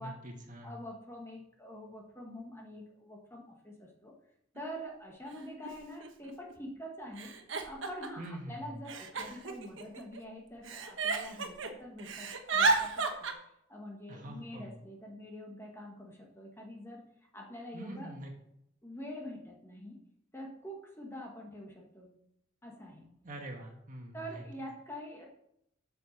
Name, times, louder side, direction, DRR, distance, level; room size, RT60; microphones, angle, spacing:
voice 1, 0.0-0.7 8.2-8.7 14.1-14.7 17.7-18.3 23.2-24.4, right 1 dB, 40° right, 1 dB, 1.8 m, -44 dB
voice 2, 0.6-4.1 4.5-7.3 7.6-13.3 13.7-17.0 17.3-18.2 18.8-20.0 20.3-22.1 22.6-23.1 24.1-25.3, equal, 10° left, 0 dB, 1.6 m, -45 dB
Giggle, 4.6-4.7 5.6-5.7 6.0-6.5 7.2-8.3 8.9-10.2 10.7-11.7 12.0-13.3, right 4 dB, 70° right, 1.2 m, -32 dB
8.2 x 6.7 x 6.6 m, 0.76 s
head